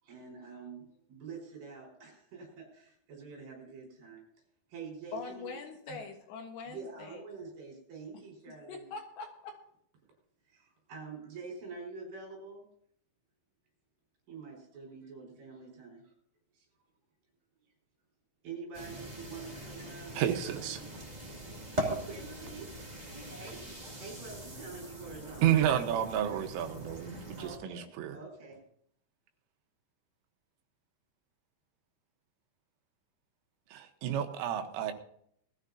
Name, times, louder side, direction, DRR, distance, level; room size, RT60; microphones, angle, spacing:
voice 1, 0.0-4.2 4.7-5.5 5.9-6.0 6.6-8.9 10.5-12.7 14.3-16.1 16.5-16.7 18.4-21.4 21.8-22.7 23.4-26.5 27.4-28.6, right 4 dB, 50° right, -1 dB, 6.6 m, -47 dB
voice 2, 5.1-7.2 8.7-9.5, left 4 dB, 70° left, 3 dB, 3.4 m, -43 dB
sound 1, 18.7-27.6, equal, 20° right, 1.0 m, -41 dB
voice 3, 20.2-20.8 25.4-28.2 33.7-34.9, right 10 dB, 80° right, 6 dB, 3.7 m, -30 dB
20.5 x 13.5 x 2.8 m, 0.68 s
omnidirectional pair, 5.7 m